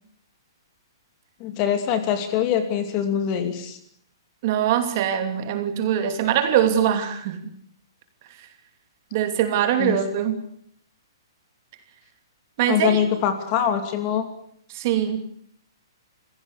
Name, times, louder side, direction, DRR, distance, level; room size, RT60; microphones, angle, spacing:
voice 1, 1.4-3.8 9.8-10.0 12.7-14.3, left 9 dB, 25° left, 8 dB, 2.7 m, -23 dB
voice 2, 4.4-7.4 9.1-10.4 12.6-13.0 14.7-15.3, right 10 dB, 35° right, 7 dB, 2.8 m, -22 dB
27.0 x 16.5 x 8.4 m, 0.65 s
hypercardioid pair, 165°, 2 cm